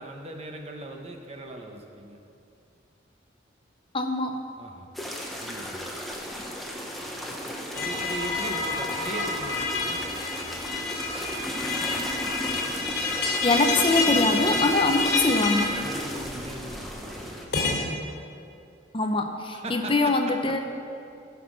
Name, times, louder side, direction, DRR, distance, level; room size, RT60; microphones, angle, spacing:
voice 1, 0.0-2.2 4.6-4.9 5.4-5.9 7.7-10.0 15.8-17.1 19.5-20.2 20.5-20.6, right 1 dB, 35° right, 3 dB, 1.0 m, -39 dB
voice 2, 3.9-4.4 13.4-15.7 18.9-20.6, left 2 dB, 30° left, 4 dB, 0.6 m, -23 dB
sound 1, 4.9-17.5, equal, ahead, 1.0 m, -35 dB
sound 2, 7.7-17.8, left 3 dB, 60° left, 2.8 m, -29 dB
15.5 x 5.9 x 6.2 m, 2.6 s
head